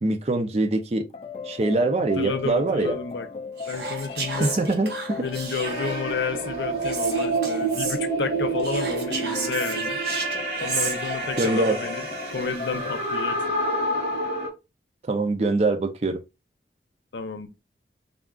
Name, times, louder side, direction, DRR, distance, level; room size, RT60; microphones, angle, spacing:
voice 1, 0.0-1.1 1.4-3.0 4.4-5.3 11.4-11.8 15.1-16.2, right 2 dB, 35° right, 0.4 m, -23 dB
sound 1, 1.1-13.0, left 5 dB, 35° left, 0.3 m, -36 dB
voice 2, 2.2-3.3 3.7-4.5 5.2-10.0 10.6-13.4 17.1-17.5, left 5 dB, 90° left, 0.6 m, -31 dB
Whispering, 3.6-6.1 6.8-8.0 8.6-11.9, right 4 dB, 70° right, 1.0 m, -33 dB
sound 2, 5.6-14.5, right 2 dB, 50° right, 1.6 m, -28 dB
3.6 x 2.3 x 3.6 m
head